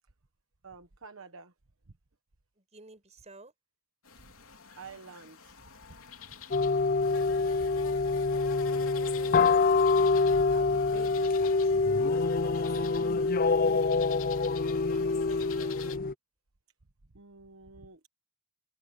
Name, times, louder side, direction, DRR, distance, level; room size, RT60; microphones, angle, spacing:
voice 1, 0.6-1.5 4.2-4.3 4.8-5.6 5.9-6.0 7.2-7.3 12.4-13.2 17.1-18.1, right 4 dB, 65° right, 1.2 m, -49 dB
voice 2, 2.6-3.5 10.5-11.3 14.9-15.8, right 2 dB, 30° right, 5.2 m, -51 dB
sound 1, 4.0-16.0, left 6 dB, 70° left, 3.4 m, -47 dB
sound 2, 6.5-16.1, left 4 dB, 40° left, 0.5 m, -26 dB
head